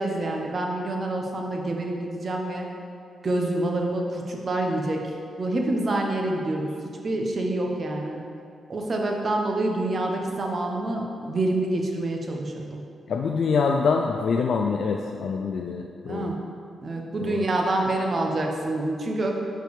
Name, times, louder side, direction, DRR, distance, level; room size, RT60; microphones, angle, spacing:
voice 1, 0.0-2.7 3.2-5.1 5.4-6.7 7.0-8.2 8.7-12.8 16.1-16.3 16.8-19.3, right 2 dB, 50° right, 1 dB, 0.9 m, -27 dB
voice 2, 13.1-16.3 17.2-17.5, left 5 dB, 70° left, 2 dB, 0.3 m, -25 dB
5.1 x 4.5 x 4.8 m, 2.4 s
cardioid pair, 60°, 0 cm